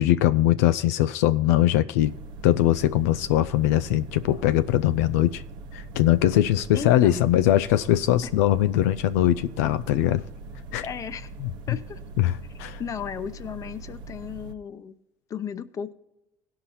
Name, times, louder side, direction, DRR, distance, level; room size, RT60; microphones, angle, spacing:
voice 1, 0.0-2.1 2.4-5.4 5.7-10.2 10.7-10.8 11.4-11.5 12.2-12.8, left 13 dB, 90° left, 0.3 m, -21 dB
sound 1, 2.0-14.5, right 3 dB, 65° right, 0.8 m, -41 dB
voice 2, 6.7-7.3 8.2-8.3 10.8-11.3 11.7-12.0 12.5-15.0 15.3-15.9, left 7 dB, 40° left, 0.7 m, -35 dB
17.0 x 5.7 x 4.2 m
supercardioid pair, 90°, 8 cm